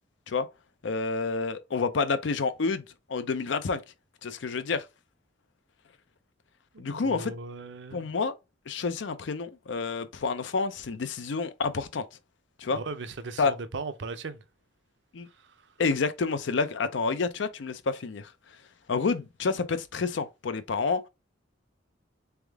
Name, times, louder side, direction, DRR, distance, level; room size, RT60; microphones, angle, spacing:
voice 1, 0.8-2.8 3.1-3.8 4.2-4.9 6.8-7.3 7.9-8.3 8.7-12.0 12.6-12.8 13.4-13.5 15.1-15.3 15.8-18.3 18.9-21.0, left 4 dB, 70° left, 0.5 m, -29 dB
voice 2, 6.7-8.1 12.7-14.4, right 3 dB, 65° right, 0.6 m, -38 dB
3.5 x 3.5 x 3.4 m
head